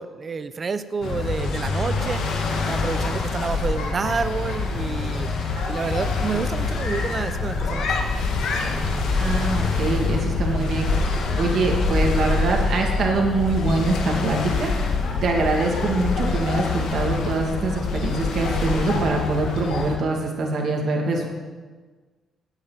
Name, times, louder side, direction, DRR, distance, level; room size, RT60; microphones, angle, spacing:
voice 1, 0.0-2.3 2.6-5.3 5.7-7.9, right 5 dB, 35° right, 12 dB, 0.7 m, -29 dB
sound 1, 1.0-20.0, left 3 dB, 80° left, 1.9 m, -25 dB
voice 2, 9.2-21.3, right 3 dB, 60° right, 1 dB, 2.3 m, -24 dB
18.0 x 9.1 x 4.1 m, 1.4 s
cardioid pair, 100°, 0 cm